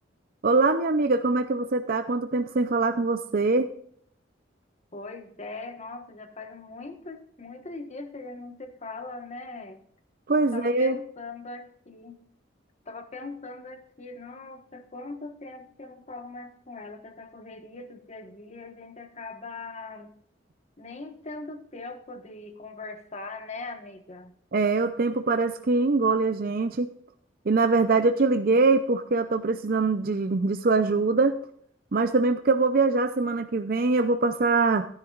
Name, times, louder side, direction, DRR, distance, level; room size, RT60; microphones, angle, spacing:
voice 1, 0.4-3.7 10.3-11.0 24.5-26.9 27.5-31.3 31.9-34.9, right 3 dB, 55° right, 9 dB, 0.6 m, -23 dB
voice 2, 4.9-9.8 10.5-12.2 12.8-20.1 20.8-24.3, left 3 dB, 40° left, 7 dB, 1.4 m, -40 dB
15.5 x 10.5 x 2.4 m, 0.63 s
head